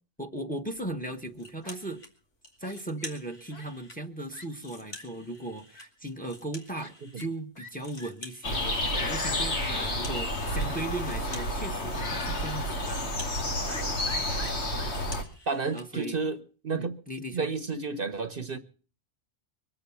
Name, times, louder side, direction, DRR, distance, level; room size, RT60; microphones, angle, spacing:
voice 1, 0.2-2.0 2.6-13.1 14.8-15.0 15.7-16.2 16.7-17.5, right 2 dB, 5° left, 1.2 m, -37 dB
Fowl, 0.8-1.2 1.6-1.8 2.6-3.1 3.5-3.7 4.0-4.1 4.3-4.5 4.9-5.0 5.7-5.9 6.7-6.9 7.2-7.3 7.6-7.7 8.0-8.1 8.5-8.6 9.2-9.3 9.7-9.9 10.5-11.0 11.3-11.5 11.9-12.1 12.4-12.5 13.7-14.9, left 2 dB, 35° left, 2.0 m, -46 dB
sound 1, 1.4-2.1 2.4-4.0 4.4-7.3 7.5-15.9, left 2 dB, 90° left, 3.0 m, -48 dB
sound 2, 8.4-15.2, left 1 dB, 70° left, 2.2 m, -30 dB
voice 2, 15.5-16.9 17.3-18.6, right 4 dB, 50° right, 1.1 m, -31 dB
23.0 x 8.0 x 7.1 m
omnidirectional pair, 1.2 m